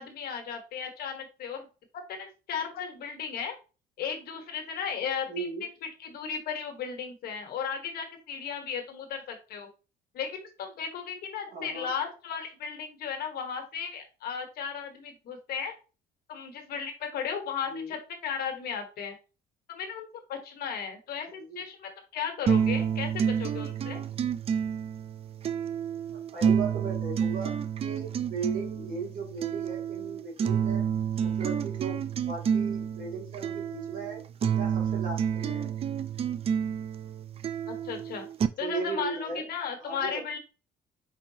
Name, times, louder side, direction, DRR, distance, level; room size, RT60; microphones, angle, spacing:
voice 1, 0.0-1.7 1.9-3.5 4.0-5.5 5.8-9.7 10.1-15.7 16.3-19.2 19.7-24.0 37.7-38.3 38.6-40.4, left 7 dB, 65° left, 5 dB, 1.3 m, -35 dB
voice 2, 5.3-5.7 11.5-11.9 17.7-18.0 21.3-21.6 26.1-27.5 27.8-30.9 31.2-34.2 34.5-35.7 38.6-39.4 39.8-40.2, right 4 dB, 55° right, -1 dB, 2.2 m, -37 dB
sound 1, 22.5-38.5, right 7 dB, 35° right, 0.4 m, -29 dB
4.8 x 3.8 x 2.8 m, 0.33 s
cardioid pair, 110°, 17 cm